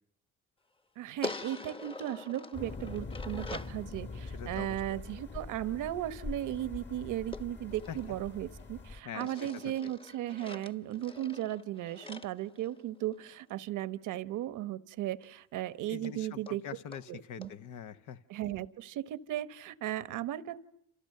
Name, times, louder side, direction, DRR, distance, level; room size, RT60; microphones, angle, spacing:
voice 1, 1.0-16.6 17.1-17.5 18.3-20.6, right 13 dB, 85° right, 13 dB, 1.0 m, -36 dB
sound 1, 1.2-3.8 7.3-8.7 9.2-13.3 15.2-15.3 15.6-15.7 16.0-16.1 16.5-16.6 16.9-17.0 17.4-17.5, left 2 dB, 15° left, 1.0 m, -44 dB
sound 2, 2.5-9.0, left 3 dB, 35° left, 1.8 m, -43 dB
voice 2, 4.3-5.0 7.9-8.0 9.0-9.7 15.9-18.2, left 8 dB, 85° left, 10 dB, 1.1 m, -44 dB
29.0 x 27.5 x 6.6 m, 0.68 s
cardioid pair, 90°, 30 cm